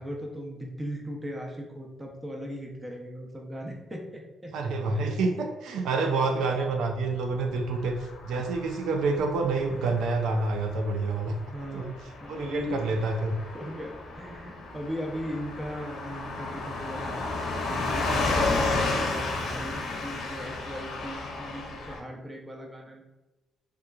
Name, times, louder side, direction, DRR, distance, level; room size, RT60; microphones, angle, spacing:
voice 1, 0.0-4.5 4.9-5.1 6.4-6.5 8.4-8.5 11.5-11.9 12.2-13.0 13.5-17.2 17.7-23.1, equal, 15° right, 0 dB, 0.7 m, -38 dB
voice 2, 4.5-11.4 11.7-11.9 12.3-13.4, right 3 dB, 80° right, 3 dB, 0.4 m, -28 dB
Car passing by / Truck, 7.7-22.0, left 3 dB, 70° left, 0.6 m, -33 dB
3.3 x 2.9 x 2.4 m, 1.1 s
cardioid pair, 90°, 0 cm